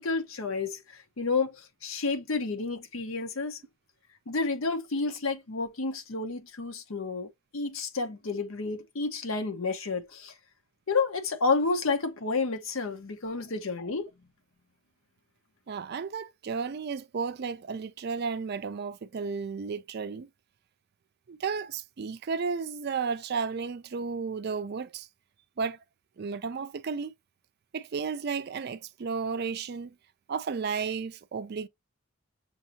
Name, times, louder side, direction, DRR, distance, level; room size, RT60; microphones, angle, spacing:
voice 1, 0.0-3.6 4.3-10.3 10.9-14.1, left 4 dB, 80° left, 0.8 m, -30 dB
voice 2, 15.7-20.3 21.3-25.1 25.6-25.8 26.2-27.1 27.7-29.9 30.3-31.7, right 5 dB, 50° right, 0.4 m, -33 dB
6.3 x 2.6 x 2.9 m
head